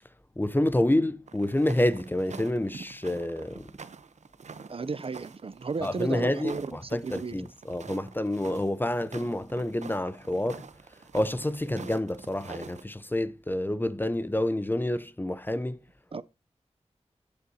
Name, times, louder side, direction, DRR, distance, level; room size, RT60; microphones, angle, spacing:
voice 1, 0.4-3.7 5.8-10.7 11.1-15.8, left 1 dB, 15° left, 0.7 m, -28 dB
sound 1, 1.3-12.8, right 5 dB, 85° right, 0.8 m, -46 dB
voice 2, 4.7-7.4 16.1-16.2, right 4 dB, 55° right, 0.5 m, -34 dB
13.5 x 8.4 x 2.8 m
wide cardioid pair, 55°, 12 cm